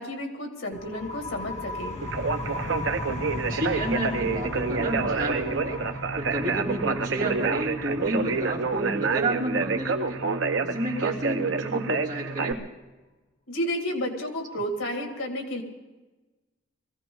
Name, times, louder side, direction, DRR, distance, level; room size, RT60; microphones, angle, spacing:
voice 1, 0.0-2.0 13.5-15.6, equal, 85° left, 4 dB, 2.5 m, -31 dB
sound 1, 0.7-12.1, left 1 dB, 35° left, 1.5 m, -38 dB
Conversation, 2.0-12.5, right 4 dB, 70° right, 0.8 m, -28 dB
voice 2, 3.5-5.8 6.2-10.2 10.6-12.6, right 1 dB, 40° right, -4 dB, 3.1 m, -31 dB
22.0 x 15.5 x 3.9 m, 1.2 s
head